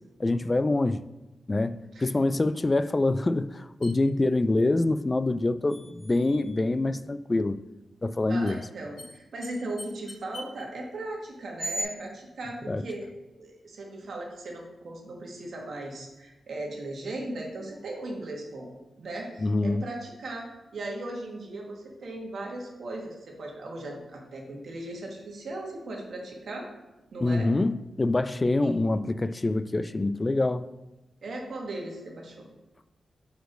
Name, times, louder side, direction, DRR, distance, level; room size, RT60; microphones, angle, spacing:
voice 1, 0.2-1.0 1.5-7.6 8.0-8.6 12.7-12.8 19.4-19.8 27.2-30.7, left 2 dB, 30° left, 0.3 m, -25 dB
sound 1, 3.8-3.9 5.7-6.7 8.4-8.6 9.0-9.1 9.4-9.5 9.8-10.6 11.6-11.8, right 1 dB, 60° left, 1.6 m, -38 dB
voice 2, 8.3-13.1 13.4-26.7 27.1-27.5 28.6-28.7 31.2-32.5, right 2 dB, 70° right, 1.3 m, -38 dB
4.6 x 4.5 x 5.1 m
cardioid pair, 65°, 0 cm